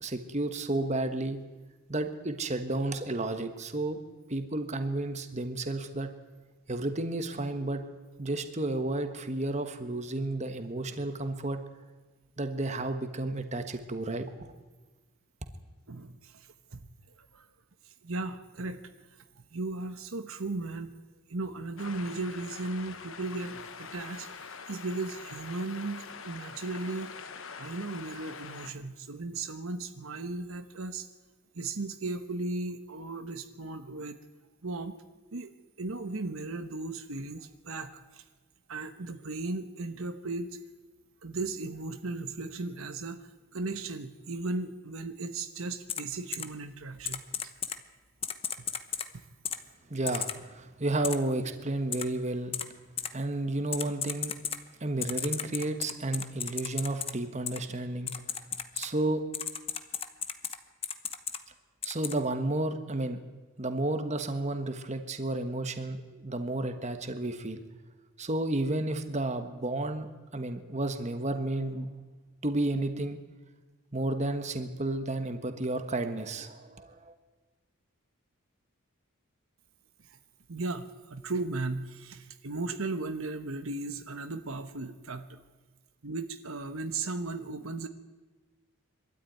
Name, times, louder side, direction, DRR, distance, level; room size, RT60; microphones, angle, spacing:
voice 1, 0.0-1.4 1.9-4.0 4.3-6.1 6.7-7.8 8.2-11.6 12.4-14.5 49.9-52.5 53.1-54.3 54.8-58.1 58.7-59.2 61.8-63.2 63.6-67.6 68.2-71.9 72.4-73.2 73.9-77.1, right 2 dB, 30° right, 7 dB, 1.3 m, -32 dB
voice 2, 15.9-16.8 17.2-17.5 17.8-19.1 19.5-20.9 21.3-27.1 27.6-31.1 31.5-34.2 34.6-35.0 35.3-35.5 35.8-38.2 38.7-40.6 41.2-47.2 80.1-80.2 80.5-85.4 86.0-87.9, right 3 dB, 70° right, 9 dB, 1.1 m, -36 dB
sound 1, 21.8-28.7, left 5 dB, 65° left, 1.2 m, -44 dB
Typing, 45.9-46.0 46.3-46.4 47.0-47.8 48.2-49.1 49.4-49.6 50.1-50.3 51.0-51.1 51.9-52.0 52.5-52.6 53.0-53.1 53.7-54.6 55.0-57.1 57.5-57.6 58.1-58.9 59.3-60.6 60.8-61.4 61.8-62.1, left 8 dB, 25° left, 0.9 m, -33 dB
23.0 x 13.0 x 9.4 m, 1.3 s
head